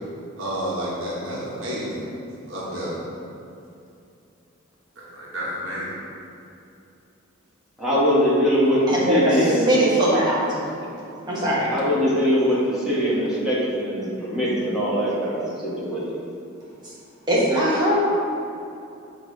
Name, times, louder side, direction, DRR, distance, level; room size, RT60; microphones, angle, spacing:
voice 1, 0.4-2.1 2.5-3.0 5.0-6.0, equal, 70° right, -7 dB, 1.3 m, -30 dB
voice 2, 7.8-9.8 11.2-16.0, equal, 5° right, -9 dB, 1.4 m, -22 dB
voice 3, 8.9-9.3 9.7-10.6 11.3-11.7 17.3-17.9, right 1 dB, 20° right, -7 dB, 1.3 m, -20 dB
6.4 x 3.2 x 5.1 m, 2.7 s
head